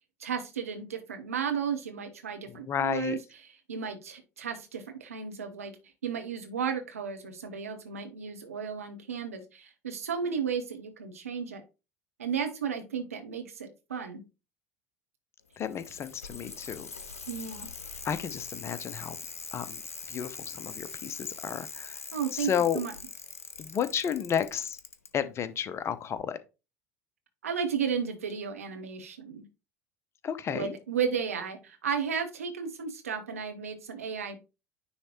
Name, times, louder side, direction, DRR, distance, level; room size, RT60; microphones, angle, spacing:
voice 1, 0.2-3.2 3.7-5.7 6.0-11.6 12.2-14.2 17.3-17.7 22.1-22.9 27.4-29.4 30.5-34.4, right 7 dB, 80° right, 1.1 m, -34 dB
voice 2, 2.5-3.2 15.6-16.9 18.0-19.2 19.5-19.8 20.1-22.0 22.3-22.8 23.6-24.8 25.1-26.4 30.2-30.7, left 8 dB, 35° left, 0.7 m, -32 dB
Bicycle, 15.5-25.1 26.2-26.3, left 5 dB, 85° left, 0.7 m, -43 dB
9.7 x 3.3 x 3.0 m
figure-of-eight pair, 70°, 8 cm